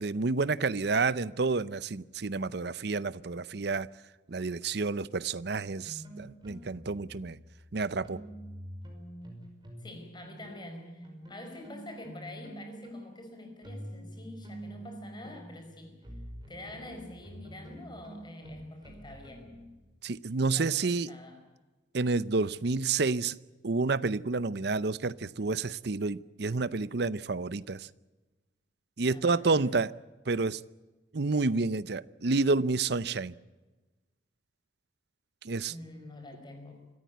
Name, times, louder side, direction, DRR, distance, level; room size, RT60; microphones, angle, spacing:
voice 1, 0.0-3.9 4.3-7.4 7.7-8.2 20.0-21.1 21.9-23.4 23.6-27.9 29.0-29.9 30.3-30.6 31.1-33.3 35.4-35.7, right 3 dB, 60° right, 0.7 m, -29 dB
sound 1, 5.8-9.9 10.2-19.7, right 1 dB, 25° right, 5.5 m, -46 dB
voice 2, 9.8-16.0 16.5-19.6 20.6-21.4 29.1-29.7 35.7-36.9, left 1 dB, 25° left, 5.2 m, -46 dB
26.0 x 14.5 x 9.5 m
head